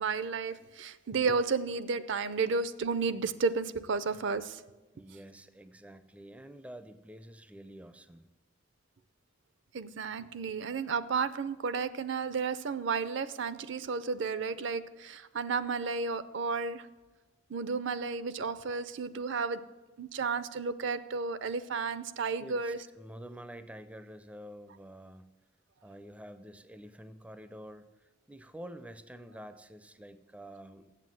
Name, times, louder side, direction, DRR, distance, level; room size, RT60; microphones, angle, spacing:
voice 1, 0.0-4.6 9.7-16.9 17.5-19.6 20.0-22.8, right 4 dB, 65° right, 15 dB, 0.5 m, -32 dB
voice 2, 4.9-8.3 22.4-25.2 25.8-30.9, equal, 5° right, 11 dB, 0.4 m, -48 dB
7.8 x 7.6 x 7.6 m, 1.2 s
head